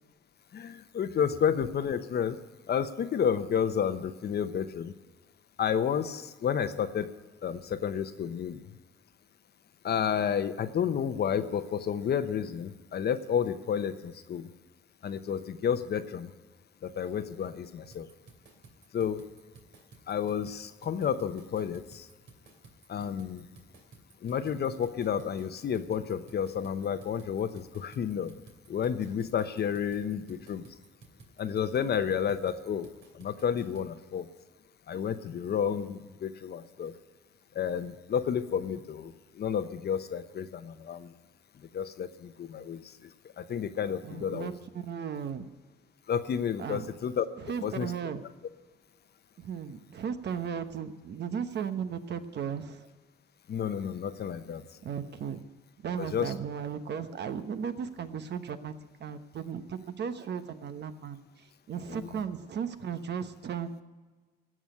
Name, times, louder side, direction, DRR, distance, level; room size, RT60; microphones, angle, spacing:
voice 1, 0.5-2.4 2.7-4.9 5.6-7.2 7.4-8.6 9.8-14.5 15.0-16.3 16.8-18.1 18.9-19.3 20.1-22.1 22.9-23.5 24.2-28.4 28.7-30.6 31.4-32.9 33.1-34.3 34.9-36.9 37.5-41.1 41.7-43.1 43.4-44.5 46.1-47.3 47.6-47.9 53.5-54.6 56.0-56.3 61.9-62.1, left 8 dB, 55° left, 11 dB, 0.9 m, -31 dB
sound 1, 17.9-33.9, right 4 dB, 75° right, 2.8 m, -56 dB
voice 2, 44.0-45.5 46.6-46.9 47.4-48.2 49.4-52.9 54.8-55.4 55.8-58.7 59.0-63.8, right 7 dB, 60° right, 9 dB, 1.1 m, -36 dB
16.5 x 6.2 x 9.6 m, 1.3 s
cardioid pair, 90°, 20 cm